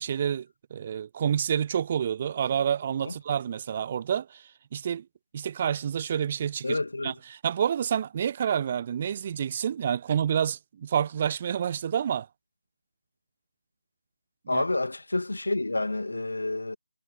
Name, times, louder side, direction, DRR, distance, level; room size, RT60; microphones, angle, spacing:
voice 1, 0.0-5.0 5.3-6.8 7.0-7.1 7.4-12.3 14.5-14.6, right 8 dB, 25° right, 0.7 m, -28 dB
voice 2, 6.6-7.2 14.5-16.8, left 2 dB, 60° left, 2.2 m, -29 dB
figure-of-eight pair, 155°, 0 cm